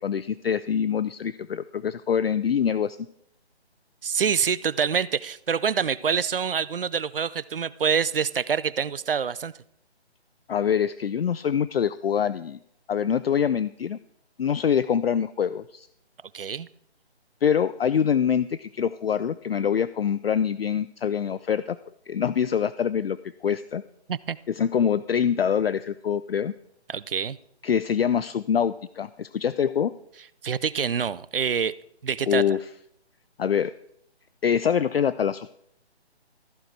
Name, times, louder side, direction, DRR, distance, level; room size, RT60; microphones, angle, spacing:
voice 1, 0.0-3.0 10.5-12.6 12.9-14.0 14.4-15.9 17.4-21.8 22.1-23.8 24.5-26.5 27.6-29.9 32.3-32.6 33.4-33.7 34.4-35.5, left 8 dB, 60° left, 16 dB, 0.5 m, -25 dB
voice 2, 4.0-9.5 16.3-16.7 24.1-24.4 26.9-27.4 30.4-31.8 32.0-32.5, right 6 dB, 55° right, 18 dB, 0.5 m, -26 dB
14.5 x 7.7 x 4.7 m, 0.71 s
figure-of-eight pair, 160°, 33 cm